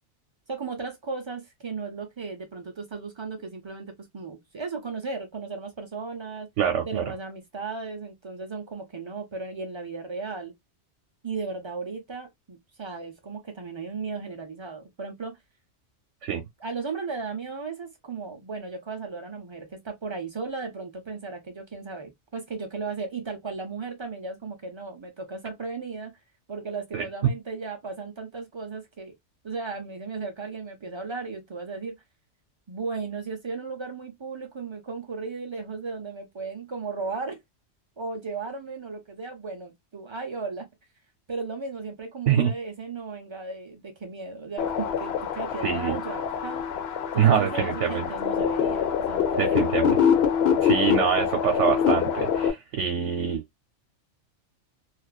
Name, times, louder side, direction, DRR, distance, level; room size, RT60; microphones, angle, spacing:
voice 1, 0.5-6.5 6.9-10.5 11.2-15.4 16.6-26.1 26.5-29.1 29.4-32.0 32.7-37.4 38.0-40.7 41.3-46.6 47.1-49.9 50.5-50.6, right 4 dB, 45° right, 0.4 m, -35 dB
voice 2, 6.6-7.0 16.2-16.4 26.9-27.3 42.3-42.5 45.6-46.0 47.2-48.1 49.4-50.0 50.6-53.4, right 8 dB, 85° right, 1.0 m, -24 dB
sound 1, 44.6-52.5, left 7 dB, 65° left, 0.8 m, -25 dB
2.4 x 2.3 x 2.2 m
omnidirectional pair, 1.2 m